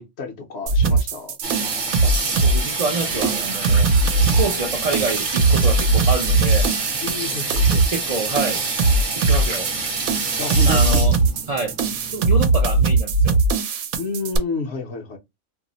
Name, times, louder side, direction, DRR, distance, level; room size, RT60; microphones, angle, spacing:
voice 1, 0.0-1.4 7.0-7.8 10.4-11.0 14.0-15.2, left 3 dB, 60° left, 0.8 m, -30 dB
sound 1, 0.7-14.4, right 3 dB, 75° right, 1.0 m, -20 dB
Water tap faucet / Sink (filling or washing), 1.4-12.3, right 3 dB, 45° right, 0.8 m, -27 dB
voice 2, 2.0-3.9 4.2-6.7 7.9-8.6 9.2-9.7 10.7-11.1 11.5-11.8 12.1-13.4, right 3 dB, 60° right, 0.4 m, -27 dB
2.6 x 2.0 x 3.8 m
omnidirectional pair, 1.5 m